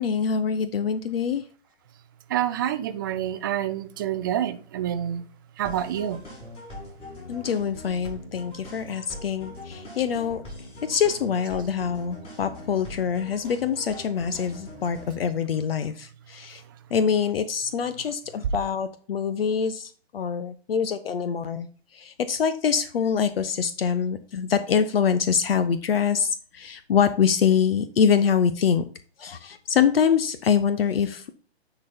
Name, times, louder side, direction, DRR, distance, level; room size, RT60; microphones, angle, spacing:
voice 1, 0.0-1.4 7.3-10.4 10.9-16.6 16.9-21.7 21.9-28.8 29.2-31.3, left 7 dB, 60° left, 0.8 m, -24 dB
voice 2, 2.3-5.2 5.6-6.2, right 11 dB, 20° right, 0.4 m, -27 dB
sound 1, 5.6-15.2, left 1 dB, 15° left, 2.4 m, -42 dB
9.7 x 4.1 x 4.2 m
hypercardioid pair, 130°, 32 cm